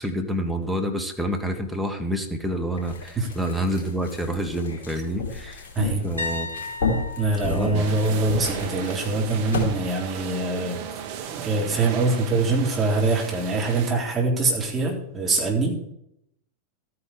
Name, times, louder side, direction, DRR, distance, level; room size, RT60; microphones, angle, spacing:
voice 1, 0.0-5.7 6.0-6.5 7.4-7.8, equal, ahead, 4 dB, 2.0 m, -28 dB
sound 1, 2.7-9.7, left 3 dB, 55° left, 4.6 m, -32 dB
voice 2, 5.7-6.0 7.2-10.8 11.3-15.8, right 3 dB, 20° right, -1 dB, 4.1 m, -24 dB
sound 2, 6.2-9.9 10.2-10.6 13.5-13.6, left 3 dB, 85° right, 1.3 m, -37 dB
sound 3, 7.7-13.9, right 8 dB, 50° right, 1.3 m, -35 dB
13.5 x 9.7 x 4.9 m, 0.74 s
figure-of-eight pair, 90°, 0 cm